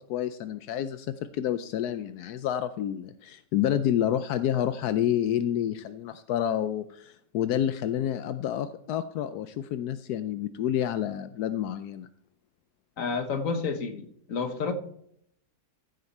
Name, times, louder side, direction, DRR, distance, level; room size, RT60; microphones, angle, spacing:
voice 1, 0.1-12.1, left 10 dB, 85° left, 11 dB, 1.2 m, -29 dB
voice 2, 13.0-14.7, left 5 dB, 60° left, 7 dB, 1.7 m, -30 dB
15.0 x 8.1 x 4.2 m, 0.67 s
omnidirectional pair, 1.6 m